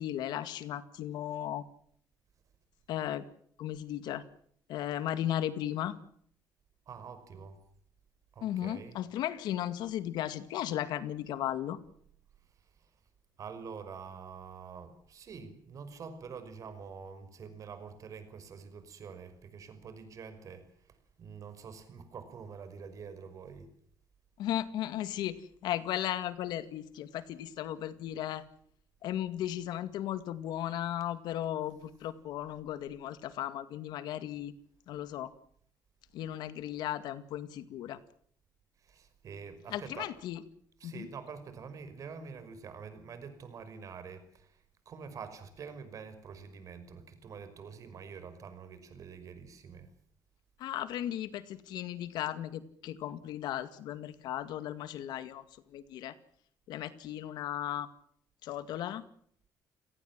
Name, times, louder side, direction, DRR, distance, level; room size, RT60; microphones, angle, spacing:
voice 1, 0.0-1.6 2.9-3.2 3.6-4.2 4.7-6.0 8.4-11.8 24.4-28.4 29.0-34.5 34.9-35.3 36.1-38.0 39.7-40.4 40.8-41.1 50.6-55.4 55.7-56.2 56.7-57.9 58.4-59.0, left 12 dB, 85° left, 12 dB, 2.1 m, -36 dB
voice 2, 6.9-7.6 8.3-9.0 12.4-12.9 13.4-23.7 38.8-40.1 40.8-49.9, right 6 dB, 50° right, 10 dB, 5.7 m, -46 dB
30.0 x 18.0 x 7.5 m, 0.64 s
cardioid pair, 125°, 7 cm